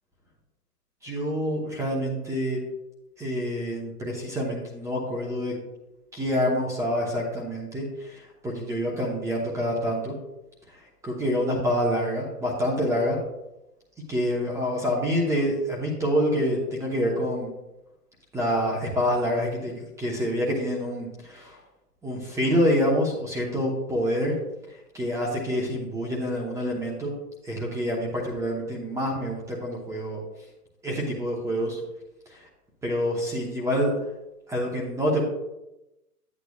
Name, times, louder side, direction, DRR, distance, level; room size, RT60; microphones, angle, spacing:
voice 1, 1.0-2.6 3.2-5.5 6.1-10.1 10.7-13.2 14.1-17.5 18.3-21.6 22.0-24.3 24.9-27.1 27.4-30.2 30.8-31.8 32.8-33.9 34.5-35.2, equal, 5° right, -2 dB, 1.0 m, -27 dB
10.0 x 8.5 x 2.4 m, 0.94 s
hypercardioid pair, 135°, 47 cm